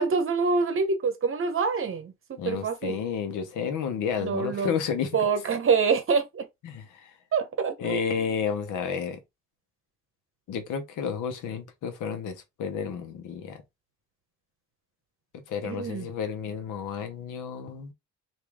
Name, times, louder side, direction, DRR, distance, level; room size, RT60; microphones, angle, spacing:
voice 1, 0.0-3.0 4.2-4.7 5.1-6.5 7.3-8.2 15.6-16.1, right 5 dB, 45° right, 1.0 m, -26 dB
voice 2, 2.4-5.1 6.6-7.1 7.8-9.2 10.5-13.6 15.3-17.9, left 6 dB, 80° left, 1.0 m, -31 dB
3.0 x 2.7 x 3.5 m
cardioid pair, 90°, 30 cm